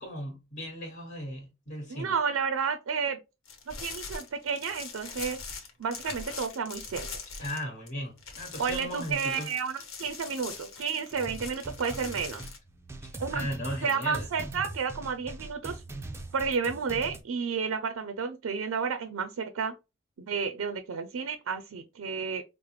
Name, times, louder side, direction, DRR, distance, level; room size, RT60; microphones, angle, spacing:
voice 1, 0.0-2.1 7.4-9.5 13.0-14.3, equal, 45° left, 1.4 m, -37 dB
voice 2, 1.9-3.2 3.7-5.4 5.8-7.1 8.6-12.4 13.2-13.5 13.8-15.8 16.3-19.7 20.2-22.4, right 6 dB, 80° right, 0.4 m, -31 dB
sound 1, 3.5-7.9 8.2-12.6, left 5 dB, 80° left, 1.0 m, -42 dB
sound 2, 11.1-17.2, right 2 dB, 15° right, 0.4 m, -41 dB
4.8 x 2.0 x 3.1 m
head